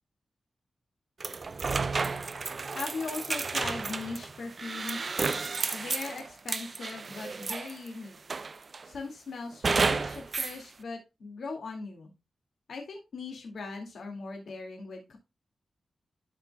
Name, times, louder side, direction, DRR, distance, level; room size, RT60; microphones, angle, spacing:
sound 1, 1.2-7.9 8.3-8.9 9.6-10.6, right 4 dB, 50° right, 0.5 m, -31 dB
voice 1, 2.7-5.2 5.7-8.2 8.8-12.1 12.7-15.2, left 4 dB, 85° left, 2 dB, 2.2 m, -39 dB
12.0 x 5.3 x 2.3 m, 0.24 s
wide cardioid pair, 100°, 0 cm